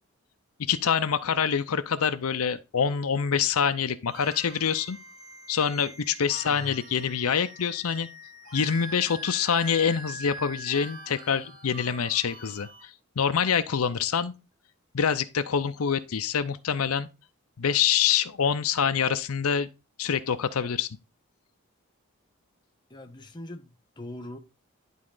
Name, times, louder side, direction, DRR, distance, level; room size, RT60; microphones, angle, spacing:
voice 1, 0.7-5.0 5.5-8.1 8.5-12.9 13.2-14.3 14.9-17.1 17.6-19.7 20.0-20.9, left 7 dB, 85° left, 0.6 m, -26 dB
sound 1, 4.1-12.8, right 1 dB, 20° right, 4.1 m, -43 dB
voice 2, 6.4-6.8 22.9-24.4, left 1 dB, 20° left, 0.9 m, -41 dB
11.0 x 3.7 x 3.8 m
head